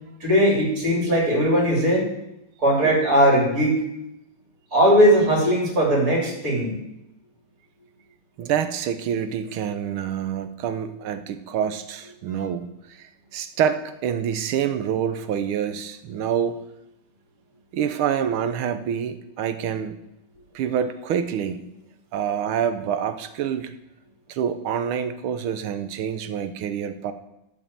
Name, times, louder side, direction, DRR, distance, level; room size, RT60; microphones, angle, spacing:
voice 1, 0.2-2.1 2.6-3.8 4.7-6.8, equal, 40° right, -1 dB, 3.9 m, -19 dB
voice 2, 8.4-16.6 17.7-20.0 20.5-21.6 22.1-23.7 24.3-27.1, right 8 dB, 80° right, 10 dB, 1.6 m, -27 dB
12.5 x 5.8 x 7.7 m, 0.86 s
omnidirectional pair, 2.3 m